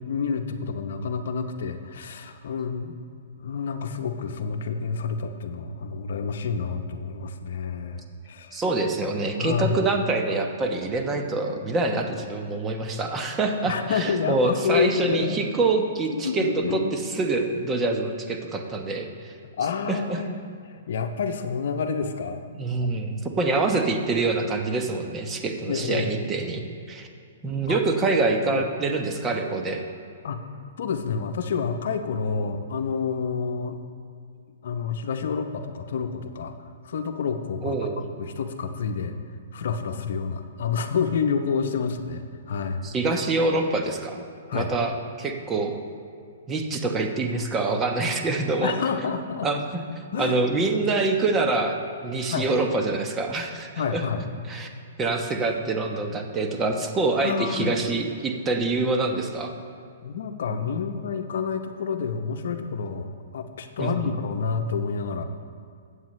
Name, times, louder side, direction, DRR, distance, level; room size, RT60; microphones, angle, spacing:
voice 1, 0.1-2.9 3.4-8.6 9.4-9.8 13.6-15.4 16.1-17.3 19.6-20.3 20.9-22.4 25.7-26.1 27.7-27.8 28.5-28.6 30.2-30.4 30.8-33.8 34.6-36.5 36.8-39.1 39.5-42.8 44.5-44.7 48.6-49.5 50.1-50.4 52.3-52.5 53.8-54.2 57.2-57.8 60.0-65.3, left 6 dB, 65° left, 7 dB, 0.8 m, -28 dB
voice 2, 8.5-19.3 19.9-20.2 22.6-27.1 27.4-29.8 37.6-38.0 42.8-44.2 44.5-44.9 45.2-45.7 46.5-48.7 49.4-49.8 50.2-51.8 52.0-54.0 54.5-54.7 55.0-59.5 63.8-64.1, right 3 dB, 20° right, 4 dB, 1.0 m, -25 dB
15.0 x 8.2 x 3.2 m, 2.3 s
hypercardioid pair, 135°, 0 cm